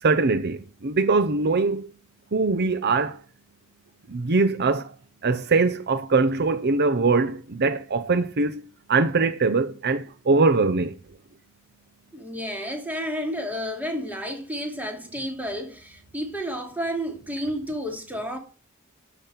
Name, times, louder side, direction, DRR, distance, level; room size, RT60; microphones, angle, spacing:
voice 1, 0.0-1.9 2.3-3.2 4.1-4.9 5.2-11.0, right 3 dB, 50° right, 0.7 m, -22 dB
voice 2, 12.1-18.4, equal, 10° right, 2.7 m, -31 dB
12.0 x 6.0 x 7.4 m
head